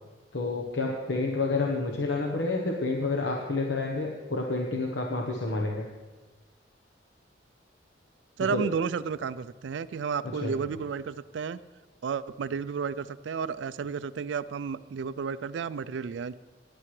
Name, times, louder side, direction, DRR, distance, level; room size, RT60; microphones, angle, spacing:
voice 1, 0.3-5.9 8.5-8.7 10.4-10.5, left 3 dB, 70° left, 0 dB, 1.0 m, -29 dB
voice 2, 8.4-11.6 12.0-16.3, right 6 dB, 70° right, 16 dB, 0.4 m, -32 dB
16.5 x 10.0 x 3.2 m, 1.3 s
head